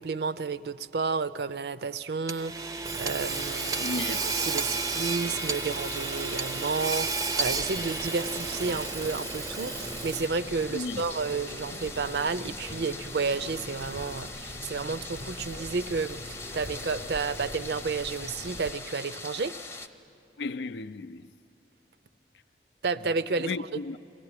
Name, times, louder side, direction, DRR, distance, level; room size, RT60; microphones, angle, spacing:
voice 1, 0.0-19.5 22.8-23.5, right 4 dB, 70° right, 0.5 m, -31 dB
Hammer / Sawing, 2.3-10.5, right 4 dB, 20° right, 0.5 m, -32 dB
sound 1, 3.3-19.9, left 3 dB, 15° left, 0.7 m, -42 dB
voice 2, 3.8-4.2 10.7-11.0 20.4-21.3 23.4-24.0, left 3 dB, 80° left, 0.5 m, -34 dB
sound 2, 7.4-18.7, left 1 dB, 40° left, 0.8 m, -43 dB
22.5 x 15.5 x 9.7 m
head